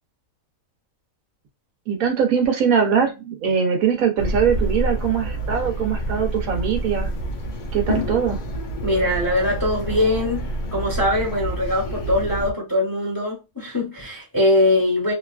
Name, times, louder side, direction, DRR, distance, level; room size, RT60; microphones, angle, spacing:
voice 1, 1.9-7.1 7.7-8.4, right 7 dB, 80° right, 1.2 m, -21 dB
sound 1, 4.2-12.5, right 1 dB, 65° left, 0.5 m, -28 dB
voice 2, 8.8-15.1, left 1 dB, 20° left, 0.8 m, -22 dB
2.9 x 2.4 x 2.3 m
omnidirectional pair, 1.5 m